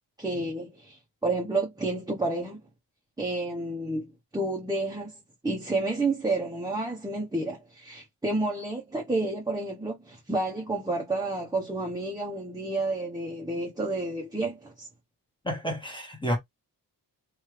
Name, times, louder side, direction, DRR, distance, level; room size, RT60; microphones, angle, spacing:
voice 1, 0.2-2.6 3.2-5.1 5.4-14.9, right 2 dB, 10° right, 0.9 m, -30 dB
voice 2, 15.4-16.4, equal, 10° left, 1.1 m, -30 dB
3.3 x 2.6 x 3.2 m
cardioid pair, 105°, 38 cm